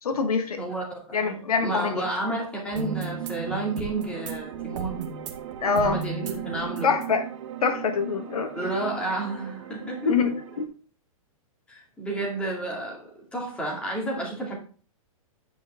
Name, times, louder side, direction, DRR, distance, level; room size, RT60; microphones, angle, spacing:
voice 1, 0.0-0.6 1.1-2.1 5.6-6.0 6.8-7.2 7.6-8.6 10.0-10.6, left 5 dB, 85° left, 7 dB, 1.5 m, -25 dB
voice 2, 0.6-5.1 5.7-6.9 8.5-10.1 11.7-14.6, right 2 dB, 5° left, -2 dB, 2.2 m, -31 dB
sound 1, 2.7-10.7, right 7 dB, 55° right, 1.6 m, -36 dB
9.5 x 5.3 x 3.6 m, 0.40 s
hypercardioid pair, 155°, 18 cm